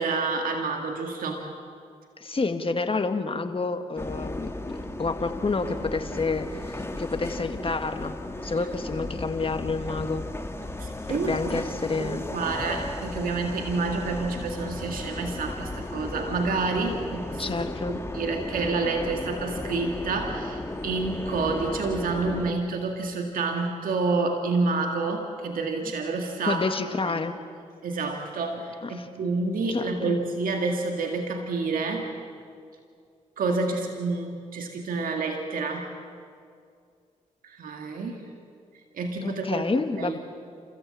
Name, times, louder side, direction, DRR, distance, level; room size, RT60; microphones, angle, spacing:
voice 1, 0.0-1.5 10.8-11.6 11.9-26.7 27.1-27.2 27.8-32.1 33.4-35.9 37.4-38.2 38.9-39.6 40.0-40.2, right 3 dB, 75° right, 3 dB, 2.0 m, -29 dB
voice 2, 2.2-8.2 8.4-10.2 11.1-12.2 17.4-18.0 26.5-27.4 29.0-29.1 29.7-30.2 39.2-40.2, left 3 dB, 40° left, 7 dB, 2.0 m, -29 dB
sound 1, 4.0-22.5, left 2 dB, 15° left, 2.1 m, -35 dB
30.0 x 14.0 x 8.6 m, 2.3 s
supercardioid pair, 45°, 14 cm